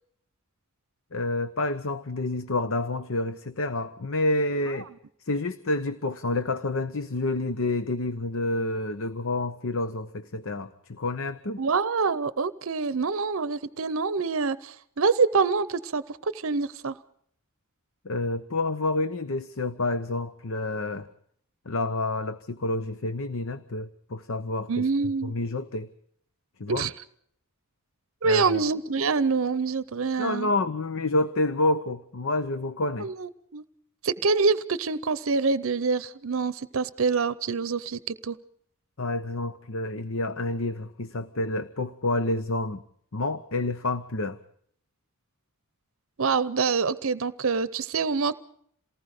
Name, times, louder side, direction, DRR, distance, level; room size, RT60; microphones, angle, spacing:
voice 1, 1.1-4.9 5.2-11.6 18.0-21.1 21.6-25.9 26.6-26.9 28.2-28.6 30.2-33.1 39.0-42.8 43.1-44.4, left 2 dB, 65° left, 12 dB, 0.9 m, -29 dB
voice 2, 11.6-16.9 24.7-25.3 26.7-26.9 28.2-30.5 33.0-33.6 34.0-38.4 46.2-48.4, right 4 dB, 70° right, 15 dB, 0.7 m, -26 dB
28.0 x 19.0 x 5.0 m, 0.65 s
head